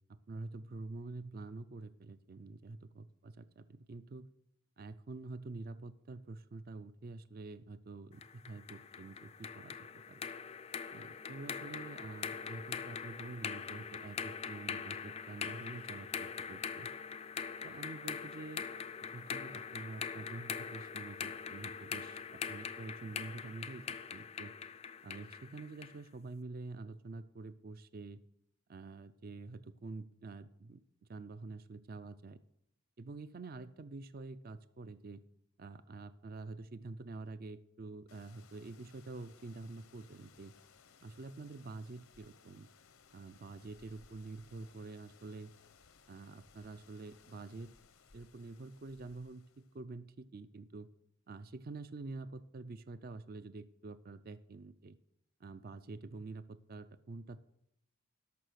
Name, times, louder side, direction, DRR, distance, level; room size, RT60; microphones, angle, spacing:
voice 1, 0.1-4.3 4.8-10.2 10.9-16.9 17.6-18.7 19.1-24.5 25.0-28.2 28.7-32.4 33.0-35.2 35.6-40.5 41.0-42.7 43.1-45.5 46.1-47.7 48.1-50.9 51.3-55.0 55.4-57.4, right 3 dB, 40° right, 13 dB, 0.4 m, -47 dB
sound 1, 8.2-26.0, left 6 dB, 30° left, 0.4 m, -43 dB
sound 2, 38.1-49.8, left 5 dB, 70° left, 0.8 m, -63 dB
13.0 x 5.7 x 6.3 m, 0.77 s
head